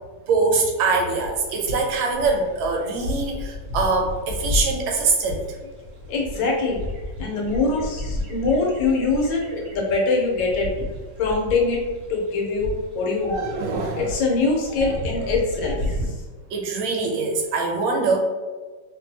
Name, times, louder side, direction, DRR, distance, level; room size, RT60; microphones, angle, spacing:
voice 1, 0.3-5.4 13.2-14.2 14.8-15.0 16.5-18.2, right 4 dB, 80° right, 1 dB, 1.3 m, -23 dB
sound 1, 1.1-16.1, left 2 dB, 60° right, 0.8 m, -33 dB
voice 2, 6.1-6.8 7.2-9.4 9.7-10.7 11.2-11.8 12.1-13.5 13.9-15.8, left 3 dB, 75° left, -2 dB, 1.4 m, -23 dB
3.0 x 2.7 x 2.6 m, 1.3 s
omnidirectional pair, 2.2 m